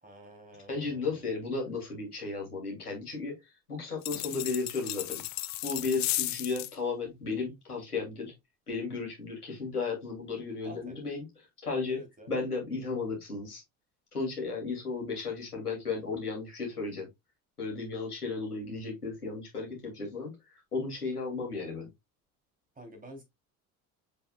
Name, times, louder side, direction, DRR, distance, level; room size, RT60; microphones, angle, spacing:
voice 1, 0.0-1.3 10.6-11.0 11.9-12.3 22.7-23.2, right 1 dB, 20° right, 3.4 m, -49 dB
voice 2, 0.7-3.3 3.7-5.2 5.6-8.3 8.7-11.3 11.6-12.0 12.3-13.6 14.1-17.1 17.6-21.9, left 4 dB, 90° left, 2.9 m, -34 dB
sound 1, 4.0-6.7, left 17 dB, 40° left, 0.6 m, -34 dB
7.0 x 5.7 x 2.4 m
figure-of-eight pair, 60°, 44 cm